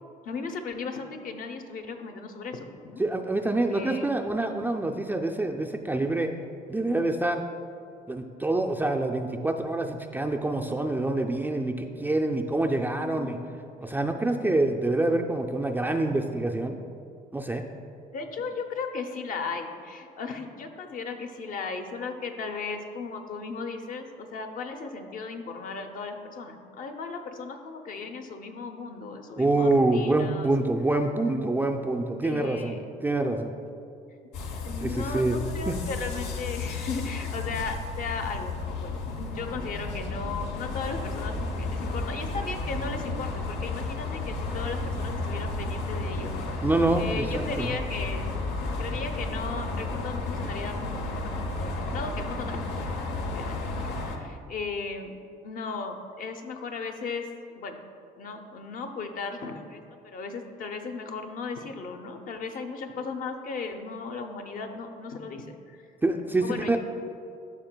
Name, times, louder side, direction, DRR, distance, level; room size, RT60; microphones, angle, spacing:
voice 1, 0.2-3.0 3.7-4.1 13.0-13.5 18.1-30.7 32.2-32.8 34.6-46.6 47.0-48.3 48.8-52.6 53.2-55.1 55.4-57.3 57.6-57.8 58.2-65.8 66.4-66.8, left 4 dB, 55° left, 5 dB, 0.7 m, -36 dB
voice 2, 3.0-6.3 6.7-7.4 8.1-13.4 13.8-16.8 17.3-17.6 29.4-33.5 34.8-35.4 35.7-35.8 46.6-47.7 66.0-66.8, right 2 dB, 10° right, 3 dB, 0.3 m, -26 dB
sound 1, 34.3-54.2, left 3 dB, 90° left, 0.7 m, -32 dB
11.5 x 5.7 x 2.2 m, 2.5 s
cardioid pair, 110°, 17 cm